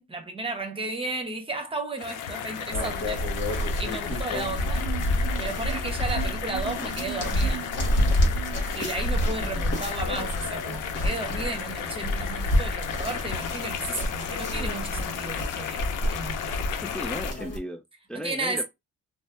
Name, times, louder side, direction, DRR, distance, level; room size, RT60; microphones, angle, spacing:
voice 1, 0.0-3.3 3.8-4.9 5.4-7.6 8.7-15.8 16.1-16.7 18.1-18.6, right 3 dB, 20° right, 0.9 m, -34 dB
sound 1, 2.0-17.3, left 9 dB, 85° left, 0.5 m, -34 dB
sound 2, 2.7-17.6, left 1 dB, 55° left, 1.2 m, -29 dB
sound 3, 4.1-8.9 9.9-10.1 10.4-10.5 10.8-10.9 11.2-11.3 14.7-15.2, right 12 dB, 65° right, 0.6 m, -41 dB
voice 2, 16.8-17.8 18.1-18.6, equal, 5° left, 0.4 m, -36 dB
2.6 x 2.0 x 3.3 m
cardioid pair, 90°, 30 cm